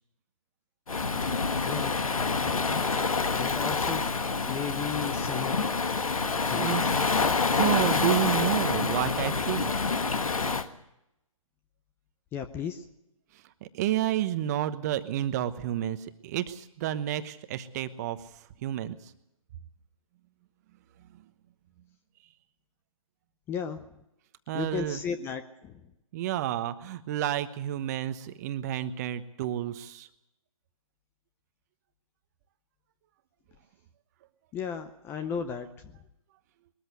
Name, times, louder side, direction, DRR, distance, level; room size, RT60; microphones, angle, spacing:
Waves surf, 0.9-10.7, left 4 dB, 75° left, 1.5 m, -27 dB
voice 1, 1.6-2.0 3.3-4.0 4.5-5.6 6.4-6.8 12.3-12.8 23.5-23.9 24.5-25.8 34.5-36.0, left 7 dB, 15° left, 10 dB, 0.7 m, -35 dB
voice 2, 6.5-7.0 7.5-9.7 13.7-18.2 18.6-19.0 24.5-25.0 26.1-30.1, right 12 dB, 30° right, 12 dB, 1.1 m, -30 dB
21.0 x 13.5 x 9.3 m, 0.85 s
figure-of-eight pair, 140°, 18 cm